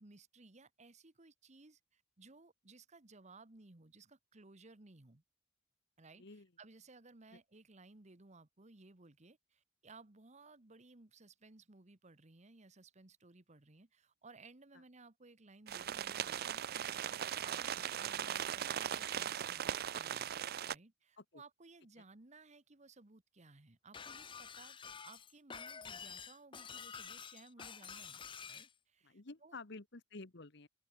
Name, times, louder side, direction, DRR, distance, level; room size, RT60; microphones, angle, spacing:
voice 1, 0.0-5.2 6.0-20.3 20.7-24.8 25.0-29.6, right 3 dB, 40° right, 1.4 m, -60 dB
voice 2, 6.1-6.5 7.3-7.4 21.2-21.4 27.6-27.7 29.0-30.7, left 3 dB, 65° left, 1.5 m, -51 dB
sound 1, 15.7-20.7, right 9 dB, 55° right, 0.4 m, -39 dB
Shatter, 23.9-28.7, left 6 dB, 25° left, 0.7 m, -49 dB
open air
head